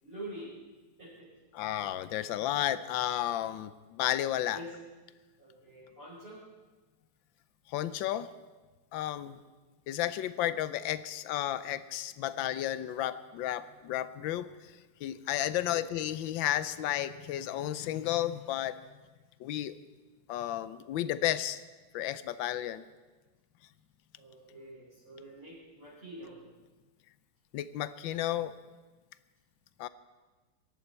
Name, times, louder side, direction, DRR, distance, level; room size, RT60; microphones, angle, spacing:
voice 1, 0.0-0.5 1.0-1.3 4.5-4.7 5.4-6.4 9.2-9.4 15.7-15.9 24.2-26.4, right 1 dB, 25° right, -10 dB, 5.0 m, -46 dB
voice 2, 1.5-4.6 7.7-8.3 8.9-9.4 9.9-14.7 15.0-18.8 19.4-19.7 20.3-21.6 21.9-22.8 27.5-28.6 29.8-29.9, left 12 dB, 90° left, 15 dB, 1.4 m, -32 dB
22.0 x 11.5 x 4.4 m, 1.3 s
omnidirectional pair, 2.0 m